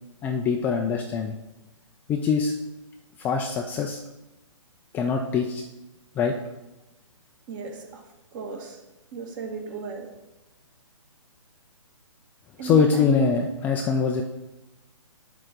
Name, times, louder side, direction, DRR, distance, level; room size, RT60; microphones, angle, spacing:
voice 1, 0.2-1.4 2.1-2.5 3.2-4.0 4.9-5.6 6.2-6.4 12.6-14.2, left 5 dB, 10° left, 2 dB, 0.3 m, -23 dB
voice 2, 7.5-8.0 8.3-8.8 9.1-10.1 12.6-13.3, right 3 dB, 35° right, 3 dB, 1.7 m, -35 dB
10.5 x 3.8 x 6.5 m, 1.0 s
figure-of-eight pair, 135°, 17 cm